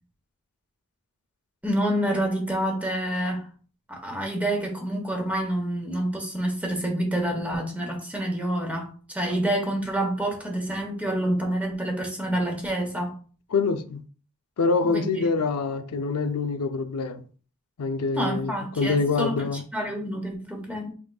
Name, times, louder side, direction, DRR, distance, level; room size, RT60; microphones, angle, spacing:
voice 1, 1.6-3.5 3.9-13.2 14.8-15.2 18.2-19.5 19.7-20.9, right 1 dB, 5° right, 1.0 m, -28 dB
voice 2, 13.5-14.0 14.6-17.2 17.8-19.6, left 4 dB, 80° left, 0.5 m, -25 dB
5.6 x 3.7 x 2.3 m
head